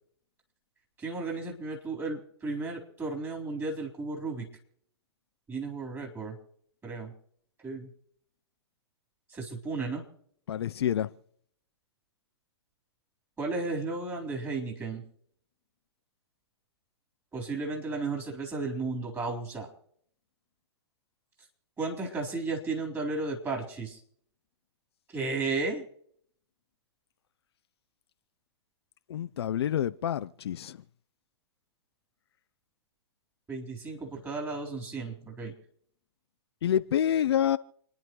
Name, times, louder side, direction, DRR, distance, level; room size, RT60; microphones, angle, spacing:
voice 1, 1.0-4.5 5.5-6.4 6.8-7.1 7.6-7.9 9.3-10.0 13.4-15.0 17.3-19.7 21.8-24.0 25.1-25.8 33.5-35.5, right 3 dB, 15° right, 3.9 m, -34 dB
voice 2, 10.5-11.1 29.1-30.8 36.6-37.6, left 10 dB, 65° left, 0.5 m, -27 dB
29.0 x 10.5 x 3.1 m
hypercardioid pair, 115°, 15 cm